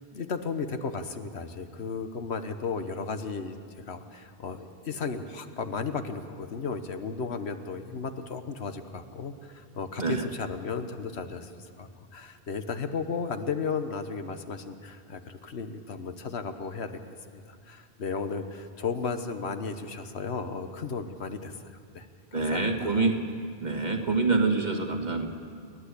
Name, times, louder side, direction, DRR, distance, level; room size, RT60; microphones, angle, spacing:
voice 1, 0.1-3.6 3.9-11.5 11.8-16.9 17.3-21.6 21.9-22.1 22.3-23.1, left 5 dB, 85° left, 8 dB, 1.4 m, -34 dB
voice 2, 22.3-23.1 23.6-25.3, right 3 dB, 45° right, 3 dB, 1.9 m, -26 dB
29.5 x 11.0 x 8.3 m, 2.2 s
omnidirectional pair, 1.1 m